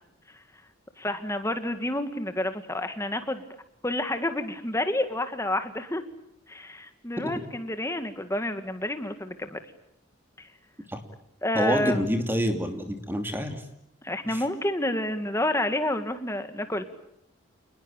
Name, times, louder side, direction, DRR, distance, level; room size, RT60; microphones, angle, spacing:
voice 1, 1.0-3.4 3.8-6.0 6.5-9.6 10.4-10.5 11.4-12.0 14.0-16.8, left 1 dB, 15° left, 8 dB, 1.9 m, -29 dB
voice 2, 11.5-13.6 14.2-14.4, equal, 10° right, 6 dB, 2.6 m, -27 dB
29.0 x 20.5 x 9.0 m, 0.76 s
head